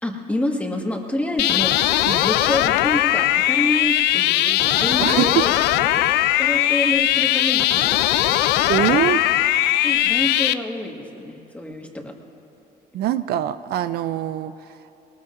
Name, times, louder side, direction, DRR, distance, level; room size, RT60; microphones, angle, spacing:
voice 1, 0.0-1.8 2.2-5.6 6.4-8.0 9.8-12.1, left 1 dB, 10° left, 1 dB, 1.6 m, -27 dB
sound 1, 1.4-10.5, left 14 dB, 85° left, 0.4 m, -19 dB
voice 2, 5.0-5.3 6.4-6.5 8.7-9.2 12.9-14.5, right 12 dB, 70° right, 13 dB, 0.4 m, -23 dB
21.0 x 19.5 x 2.5 m, 2.9 s
cardioid pair, 110°, 17 cm